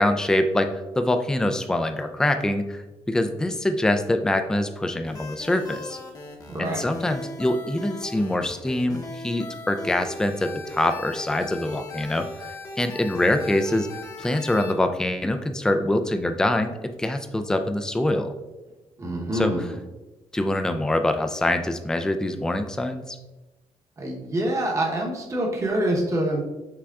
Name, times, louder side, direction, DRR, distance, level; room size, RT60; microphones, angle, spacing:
voice 1, 0.0-6.0 6.6-13.9 14.2-18.3 19.3-19.7 20.3-23.2, left 1 dB, 5° left, 7 dB, 0.3 m, -24 dB
sound 1, 5.0-14.8, left 2 dB, 30° left, 0.9 m, -39 dB
voice 2, 6.5-6.9 19.0-19.8 24.0-26.4, right 1 dB, 25° right, -1 dB, 0.9 m, -26 dB
6.0 x 3.5 x 2.3 m, 1.1 s
cardioid pair, 110°, 11 cm